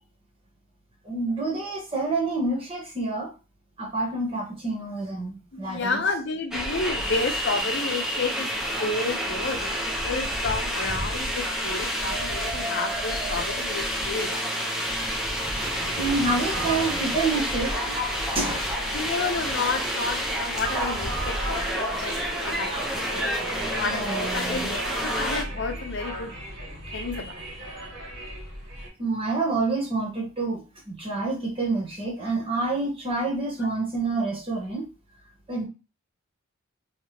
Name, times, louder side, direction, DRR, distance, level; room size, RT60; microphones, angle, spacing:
voice 1, 1.0-3.3 3.8-6.0 9.6-9.7 12.6-12.7 15.2-18.0 18.3-18.7 23.9-24.7 29.0-34.9 35.5-35.6, right 3 dB, 25° right, -1 dB, 1.1 m, -28 dB
voice 2, 5.5-8.5 8.8-14.3 18.9-26.3 26.9-27.4 33.6-33.7, left 3 dB, 55° left, 5 dB, 0.6 m, -31 dB
sound 1, 6.5-25.4, equal, ahead, 0.8 m, -29 dB
sound 2, 15.6-28.9, right 1 dB, 60° right, 2.1 m, -36 dB
3.3 x 3.2 x 2.8 m, 0.30 s
head